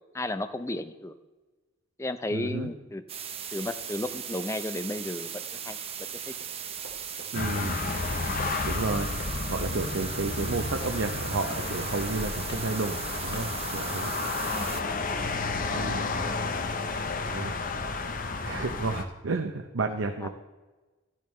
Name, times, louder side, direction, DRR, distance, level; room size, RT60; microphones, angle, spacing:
voice 1, 0.1-1.1 2.0-3.0 3.5-5.3 5.6-5.8 6.3-6.4 14.4-14.7 20.2-20.3, left 1 dB, 15° left, 10 dB, 0.5 m, -33 dB
voice 2, 2.3-2.7 7.3-7.8 8.6-9.2 9.5-14.1 15.7-16.1 17.3-17.5 18.4-20.3, right 3 dB, 90° right, 5 dB, 0.7 m, -31 dB
sound 1, 3.1-14.8, right 8 dB, 30° right, 0.7 m, -38 dB
Run, 6.4-14.9, left 1 dB, 90° left, 2.4 m, -48 dB
sound 2, 7.3-19.0, left 3 dB, 45° left, 0.8 m, -32 dB
12.0 x 10.5 x 3.2 m, 1.2 s
head